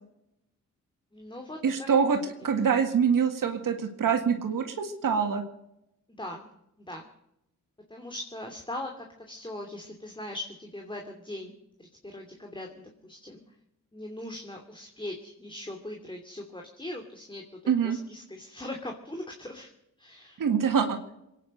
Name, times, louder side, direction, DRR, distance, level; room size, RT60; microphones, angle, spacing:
voice 1, 1.1-1.6 2.4-2.8 6.2-6.5 6.9-7.0 7.9-11.5 12.0-13.4 13.9-19.7 20.0-20.4, left 1 dB, 15° left, 2 dB, 2.8 m, -40 dB
voice 2, 1.6-5.4 17.7-18.0 20.4-21.0, right 6 dB, 70° right, 5 dB, 1.9 m, -25 dB
22.5 x 9.8 x 6.6 m, 0.82 s
cardioid pair, 65°, 33 cm